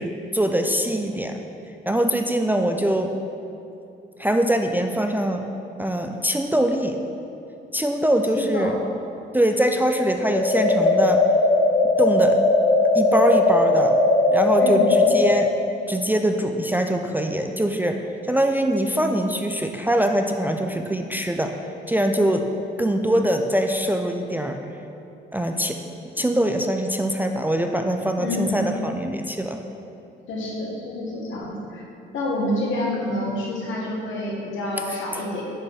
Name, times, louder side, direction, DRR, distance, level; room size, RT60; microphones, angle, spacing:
voice 1, 0.0-1.4 1.9-3.2 4.2-5.4 5.8-7.0 7.7-8.8 9.3-11.2 12.0-12.4 12.9-14.0 14.3-15.5 15.9-21.6 21.9-22.5 22.8-24.6 25.3-25.8 26.2-29.6, right 1 dB, 10° right, 4 dB, 0.3 m, -23 dB
sound 1, 10.3-15.4, left 2 dB, 30° left, 1.1 m, -18 dB
voice 2, 14.6-14.9 28.2-28.6 30.3-31.8 32.1-35.4, left 1 dB, 75° left, -3 dB, 1.3 m, -27 dB
7.2 x 4.2 x 3.4 m, 2.8 s
cardioid pair, 90°, 20 cm